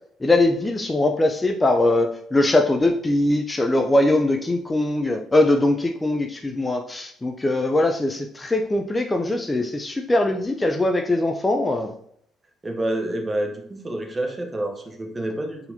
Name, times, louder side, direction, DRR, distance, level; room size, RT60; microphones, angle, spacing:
voice 1, 0.2-11.9, left 2 dB, 20° left, 3 dB, 0.5 m, -21 dB
voice 2, 12.6-15.6, right 1 dB, 25° right, 3 dB, 1.0 m, -28 dB
4.2 x 4.1 x 2.8 m, 0.67 s
supercardioid pair, 70°, 0 cm